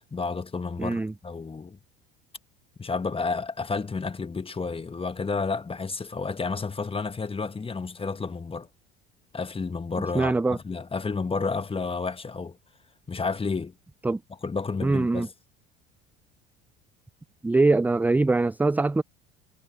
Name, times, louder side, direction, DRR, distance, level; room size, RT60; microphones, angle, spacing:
voice 1, 0.1-1.8 2.8-8.7 9.3-12.6 13.1-13.7 14.4-15.3, left 4 dB, 20° left, 1.4 m, -31 dB
voice 2, 0.8-1.1 10.1-10.6 14.0-14.2 14.8-15.3 17.4-19.0, right 3 dB, 5° right, 0.4 m, -22 dB
hypercardioid pair, 70°, 29 cm